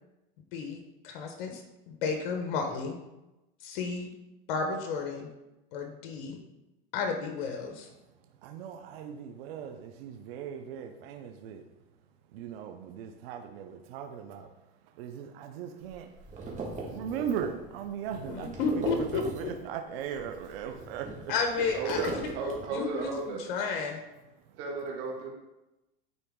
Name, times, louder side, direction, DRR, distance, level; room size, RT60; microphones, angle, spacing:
voice 1, 0.5-3.0 3.6-4.1 4.5-5.3 5.7-6.4 6.9-7.9 18.3-19.5 21.3-22.1 22.7-24.0, left 5 dB, 75° left, 4 dB, 1.1 m, -32 dB
voice 2, 8.1-11.6 12.3-21.6 24.4-24.6, right 8 dB, 80° right, 5 dB, 0.8 m, -39 dB
sound 1, 15.8-19.7 20.0-23.1, right 3 dB, 25° right, 1.7 m, -40 dB
voice 3, 21.7-23.4 24.6-25.3, right 3 dB, 60° right, -2 dB, 2.4 m, -34 dB
9.7 x 4.0 x 3.7 m, 0.98 s
supercardioid pair, 140°, 29 cm